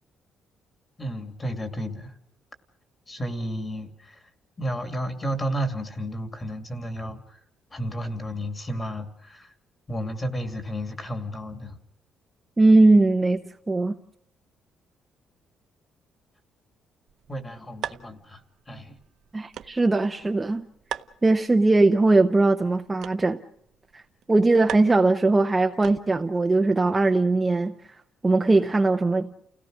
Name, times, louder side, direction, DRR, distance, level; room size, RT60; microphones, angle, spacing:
voice 1, 1.0-2.2 3.1-4.3 4.6-7.4 7.7-9.5 9.9-11.8 17.3-19.0, equal, 20° left, 2.5 m, -32 dB
voice 2, 12.6-13.4 13.7-13.9 19.3-20.7 21.2-23.4 23.9-24.0 24.3-28.0 28.2-29.3, right 2 dB, 15° right, 0.8 m, -20 dB
sound 1, 17.1-26.4, right 10 dB, 60° right, 1.0 m, -42 dB
30.0 x 17.5 x 6.4 m
cardioid pair, 170°, 0 cm